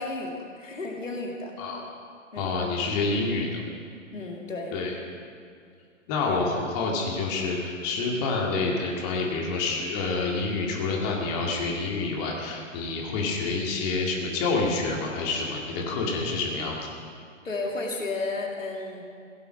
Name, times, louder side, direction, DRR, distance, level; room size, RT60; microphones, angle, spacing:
voice 1, 0.0-1.5 2.3-2.6 4.1-4.7 6.3-6.4 17.4-19.0, left 3 dB, 70° left, 0 dB, 2.2 m, -33 dB
voice 2, 2.4-3.7 4.7-5.0 6.1-16.9, left 3 dB, 30° left, -1 dB, 2.1 m, -28 dB
16.5 x 8.3 x 6.3 m, 2.3 s
figure-of-eight pair, 120°, 40 cm